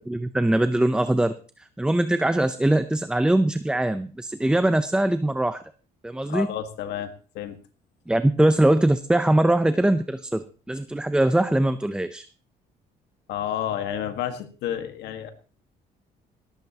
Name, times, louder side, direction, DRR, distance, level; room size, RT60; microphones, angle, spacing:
voice 1, 0.0-1.3 1.8-5.6 6.0-6.5 8.1-12.3, right 1 dB, 5° right, 11 dB, 0.6 m, -22 dB
voice 2, 6.3-7.1 7.3-7.6 13.3-15.3, left 10 dB, 80° left, 7 dB, 1.6 m, -30 dB
18.0 x 14.0 x 2.9 m, 0.37 s
cardioid pair, 110°, 17 cm